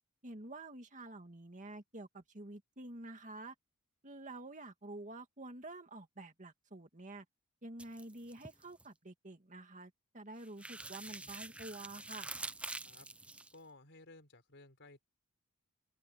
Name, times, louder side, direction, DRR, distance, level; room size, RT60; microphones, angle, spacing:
voice 1, 0.2-3.5 4.0-7.2 7.6-12.3, right 2 dB, 35° right, 2.2 m, -49 dB
sound 1, 7.8-8.9 10.4-13.6, right 2 dB, 5° right, 0.4 m, -46 dB
voice 2, 13.5-15.0, left 2 dB, 55° left, 4.9 m, -57 dB
head